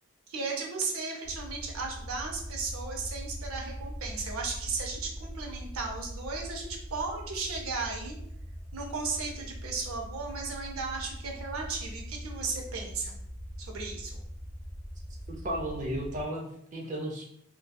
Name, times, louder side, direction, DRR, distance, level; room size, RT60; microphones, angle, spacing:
voice 1, 0.3-8.2 8.7-13.1 13.6-14.2, right 4 dB, 85° right, 1 dB, 0.5 m, -35 dB
sound 1, 1.2-16.3, equal, 35° left, 0.5 m, -41 dB
voice 2, 15.3-17.3, right 1 dB, 35° right, 1 dB, 0.5 m, -34 dB
2.7 x 2.2 x 2.2 m, 0.69 s
head